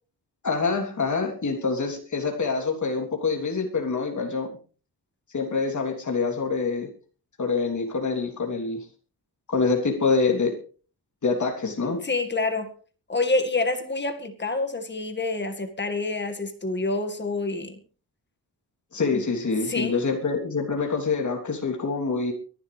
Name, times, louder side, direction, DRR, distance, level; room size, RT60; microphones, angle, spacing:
voice 1, 0.4-4.5 5.3-6.9 7.4-8.8 9.5-10.5 11.2-12.0 18.9-22.3, left 4 dB, 45° left, 3.3 m, -26 dB
voice 2, 11.8-12.7 13.1-17.8 19.1-19.2 19.7-20.0, left 3 dB, 25° left, 2.0 m, -27 dB
23.5 x 11.5 x 3.4 m
wide cardioid pair, 140°, 40 cm